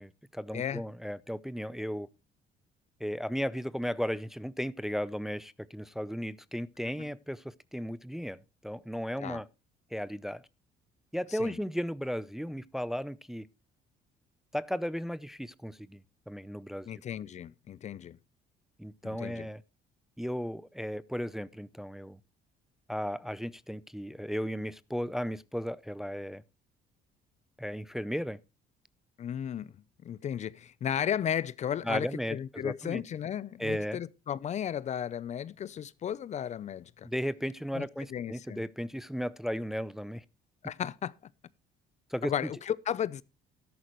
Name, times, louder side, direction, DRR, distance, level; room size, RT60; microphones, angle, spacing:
voice 1, 0.0-2.1 3.0-9.5 9.9-10.4 11.1-13.5 14.5-16.9 18.8-19.6 20.2-22.2 22.9-26.4 27.6-28.4 31.8-33.0 33.6-34.0 37.0-40.2 42.1-42.3, equal, ahead, 0.5 m, -35 dB
voice 2, 16.9-18.2 19.0-19.5 29.2-37.1 37.7-38.6 40.6-41.1 42.2-43.2, left 9 dB, 45° left, 0.6 m, -35 dB
13.0 x 11.0 x 3.1 m
cardioid pair, 110°, 17 cm